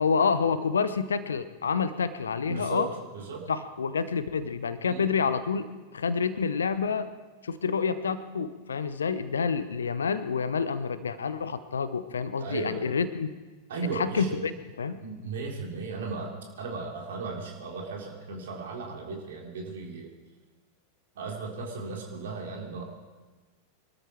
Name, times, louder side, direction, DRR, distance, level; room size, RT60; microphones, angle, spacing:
voice 1, 0.0-2.9 3.5-7.1 7.4-13.3 13.9-14.5 14.8-15.0, left 5 dB, 70° left, 13 dB, 0.9 m, -28 dB
voice 2, 2.5-2.9 3.1-3.5 4.9-5.0 12.4-12.9 13.7-14.5 15.0-16.3 16.6-20.1 21.2-22.8, right 4 dB, 60° right, 0 dB, 3.6 m, -36 dB
24.0 x 13.0 x 4.5 m, 1.3 s
figure-of-eight pair, 90°, 0 cm